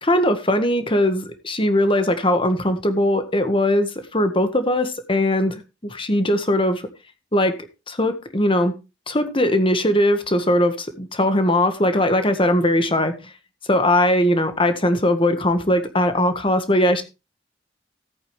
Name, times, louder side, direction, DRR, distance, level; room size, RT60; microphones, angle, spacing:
voice 1, 0.0-6.8 7.3-7.5 7.9-8.7 9.1-13.3 13.7-17.0, left 1 dB, 30° left, 8 dB, 1.7 m, -20 dB
15.0 x 8.8 x 3.3 m, 0.28 s
head